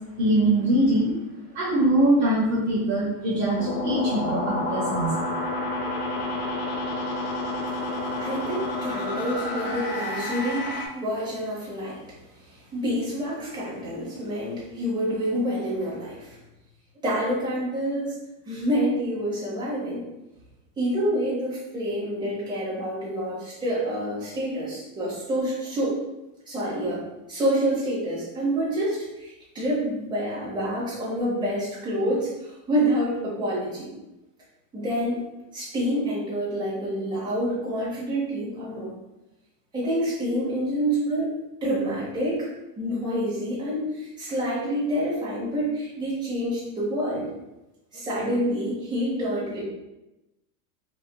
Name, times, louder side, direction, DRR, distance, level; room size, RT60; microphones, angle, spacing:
voice 1, 0.2-1.1 1.5-5.1, right 1 dB, 35° right, -7 dB, 1.0 m, -22 dB
sound 1, 3.6-10.9, left 2 dB, 55° left, 0.7 m, -29 dB
voice 2, 8.2-12.0 12.4-16.4 17.0-18.1 18.4-20.0 20.8-26.0 26.5-33.9 34.7-35.2 35.5-38.9 39.7-42.5 42.8-47.3 47.9-49.6, equal, 10° right, -9 dB, 1.4 m, -27 dB
4.3 x 2.8 x 2.2 m, 0.98 s
supercardioid pair, 145°, 48 cm